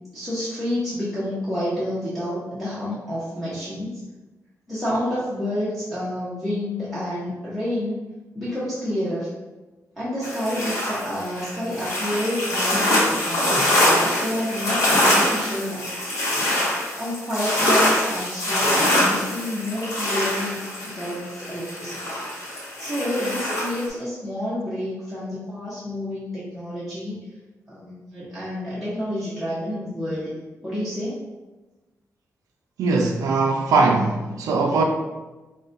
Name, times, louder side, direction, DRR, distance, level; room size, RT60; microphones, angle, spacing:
voice 1, 0.1-4.0 4.7-8.0 8.3-9.3 10.0-16.1 16.9-22.0 22.8-27.3 27.7-30.3 30.6-31.2, left 1 dB, ahead, -11 dB, 0.7 m, -29 dB
sound 1, 10.2-23.9, left 1 dB, 60° left, 0.9 m, -23 dB
voice 2, 32.8-34.8, right 3 dB, 80° right, 1 dB, 0.3 m, -20 dB
4.6 x 2.1 x 2.6 m, 1.1 s
wide cardioid pair, 160°, 6 cm